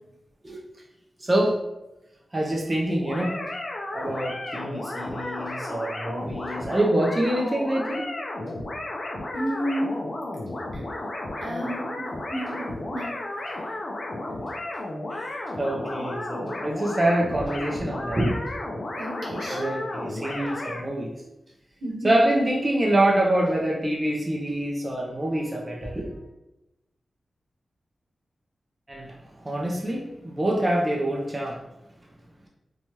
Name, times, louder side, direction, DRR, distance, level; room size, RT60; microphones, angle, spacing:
voice 1, 1.2-1.6 2.3-3.3 3.9-8.0 15.1-18.4 19.5-21.1 22.0-26.2 28.9-29.2 29.4-31.6, right 1 dB, 20° right, -2 dB, 0.4 m, -25 dB
sound 1, 3.0-20.8, left 2 dB, 45° left, 0.4 m, -33 dB
voice 2, 9.3-9.9 10.7-10.8 11.4-11.9 12.3-13.1 13.5-13.8 19.0-19.7 21.8-22.1, equal, 75° right, -3 dB, 0.9 m, -31 dB
2.7 x 2.2 x 3.0 m, 0.93 s
wide cardioid pair, 155°, 0 cm